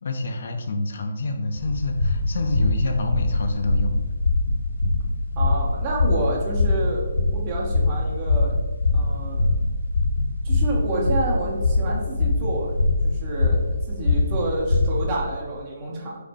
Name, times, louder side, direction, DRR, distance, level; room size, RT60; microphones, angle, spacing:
voice 1, 0.0-3.9, left 2 dB, 60° left, 4 dB, 0.5 m, -27 dB
sound 1, 1.5-15.2, left 2 dB, 90° left, 1.0 m, -23 dB
voice 2, 5.3-8.5 8.9-9.4 10.4-12.8 13.0-13.6 13.9-16.2, right 2 dB, 30° right, -4 dB, 1.1 m, -29 dB
4.8 x 2.1 x 4.5 m, 1.3 s
hypercardioid pair, 150°, 0 cm